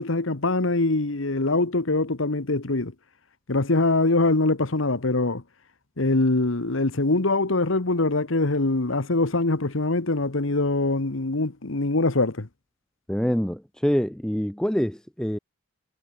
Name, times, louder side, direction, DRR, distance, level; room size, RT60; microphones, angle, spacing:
voice 1, 0.0-2.9 3.5-5.4 6.0-12.5, left 2 dB, 75° left, 1.5 m, -23 dB
voice 2, 13.1-15.4, equal, 5° left, 0.6 m, -25 dB
head